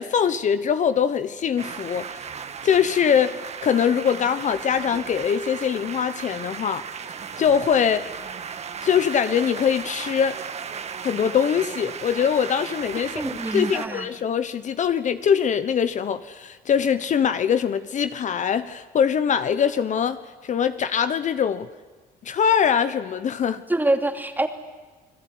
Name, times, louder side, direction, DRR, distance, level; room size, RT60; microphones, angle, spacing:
voice 1, 0.0-2.2 2.6-6.8 7.4-8.1 8.8-10.4 11.0-21.7 22.2-23.6, left 7 dB, 45° left, 1.1 m, -23 dB
sound 1, 1.6-13.9, right 6 dB, 40° right, 1.7 m, -36 dB
voice 2, 13.0-14.1 23.7-24.5, right 2 dB, 10° right, 2.8 m, -25 dB
29.0 x 20.5 x 9.6 m
cardioid pair, 110°, 17 cm